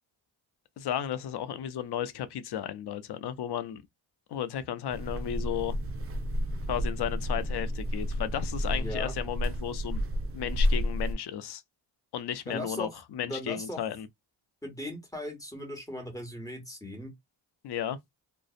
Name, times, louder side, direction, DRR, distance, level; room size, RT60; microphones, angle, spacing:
voice 1, 0.8-3.8 4.3-5.8 6.7-10.0 10.3-11.6 12.1-14.1 17.6-18.0, left 10 dB, 60° left, 0.5 m, -34 dB
sound 1, 4.9-11.1, equal, 30° right, 0.4 m, -31 dB
voice 2, 8.6-9.2 12.5-12.9 13.2-13.8 14.6-17.1, left 1 dB, 5° left, 1.2 m, -38 dB
2.5 x 2.0 x 2.4 m
cardioid pair, 80°, 46 cm